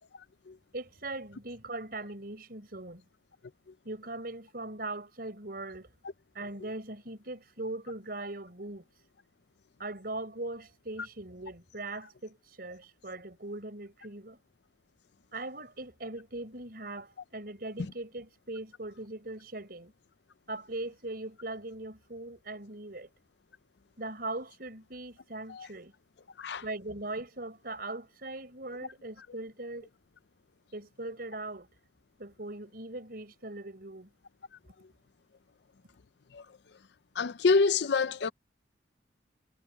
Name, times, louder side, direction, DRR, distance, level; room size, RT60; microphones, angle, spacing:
voice 1, 0.7-3.0 3.8-5.9 6.3-8.9 9.8-14.4 15.3-19.9 20.5-23.1 24.0-25.9 26.6-29.9 30.7-31.7 32.2-34.1, right 2 dB, 50° right, 6.2 m, -40 dB
voice 2, 37.2-38.3, left 4 dB, 65° left, 0.5 m, -26 dB
head